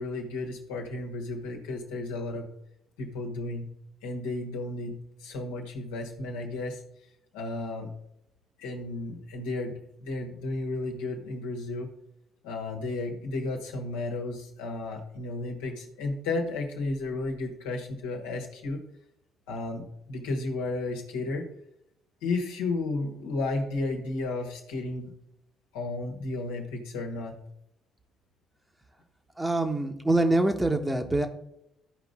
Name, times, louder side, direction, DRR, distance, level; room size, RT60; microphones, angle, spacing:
voice 1, 0.0-2.5 3.0-3.7 4.0-6.8 7.3-7.9 8.6-9.7 10.0-11.9 12.4-18.8 19.5-21.4 22.2-25.1 25.7-27.4, left 2 dB, 75° left, 1 dB, 1.5 m, -33 dB
voice 2, 29.4-31.3, right 2 dB, 15° right, 5 dB, 1.3 m, -25 dB
13.5 x 5.1 x 3.7 m, 0.78 s
figure-of-eight pair, 45°, 0 cm